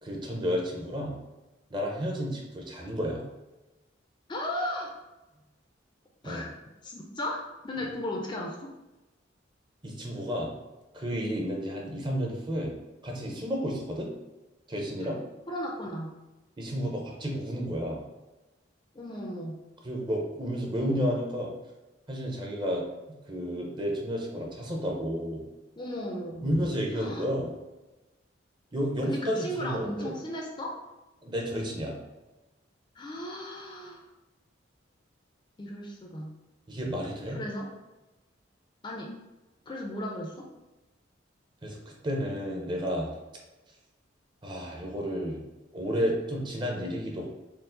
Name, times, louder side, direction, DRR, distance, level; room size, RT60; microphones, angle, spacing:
voice 1, 0.0-1.2 1.7-3.2 6.2-6.4 9.8-10.5 10.9-12.7 13.0-14.1 14.7-15.2 16.6-18.0 19.8-21.5 22.1-22.8 23.3-25.4 26.4-27.5 28.7-30.1 31.2-32.0 36.7-37.4 41.6-43.1 44.4-45.4 45.7-47.3, equal, 25° right, 0 dB, 0.6 m, -31 dB
voice 2, 4.3-4.9 6.2-6.5 6.8-8.7 15.0-15.1 15.5-16.1 18.9-19.6 25.8-26.7 26.9-27.3 29.0-30.8 32.9-34.0 35.6-36.4 37.3-37.7 38.8-39.1 39.7-40.5, left 1 dB, 25° left, 0 dB, 0.4 m, -36 dB
4.5 x 2.0 x 3.7 m, 1.1 s
head